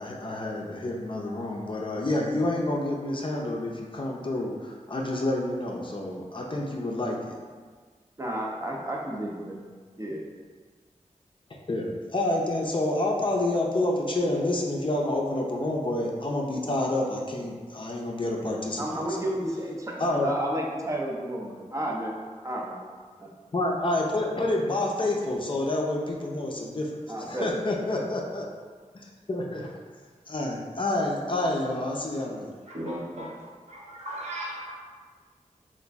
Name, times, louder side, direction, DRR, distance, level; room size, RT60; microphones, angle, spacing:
voice 1, 0.0-7.4 11.7-19.0 20.0-20.3 23.5-28.4 29.3-29.7 30.3-32.5, left 1 dB, 40° left, -1 dB, 0.5 m, -28 dB
voice 2, 8.2-9.6 10.0-10.2 18.8-22.1 22.4-22.8 23.2-23.3 27.1-27.5 27.8-28.0, right 1 dB, 25° right, -1 dB, 0.6 m, -32 dB
voice 3, 32.7-33.4 33.7-34.7, right 1 dB, 60° right, -6 dB, 0.9 m, -36 dB
3.0 x 2.5 x 3.4 m, 1.5 s
wide cardioid pair, 65°, 13 cm